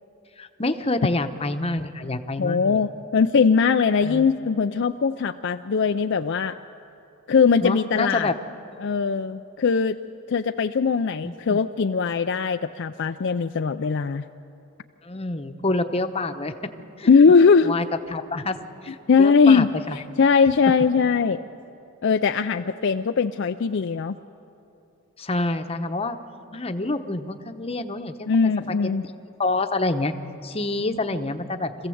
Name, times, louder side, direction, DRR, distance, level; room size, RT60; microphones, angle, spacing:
voice 1, 0.4-2.8 4.0-4.3 7.6-8.3 11.2-11.6 15.0-16.5 17.0-17.1 17.6-18.6 18.8-20.0 25.2-26.2 26.5-28.7 29.4-30.1 30.4-31.9, left 2 dB, 25° left, 8 dB, 0.9 m, -27 dB
voice 2, 2.4-6.6 7.3-8.3 8.8-10.0 10.3-14.2 17.1-17.7 19.1-19.7 20.2-21.4 22.0-24.2 28.3-29.0, left 5 dB, 55° left, 8 dB, 0.4 m, -20 dB
25.5 x 15.5 x 7.8 m, 2.7 s
head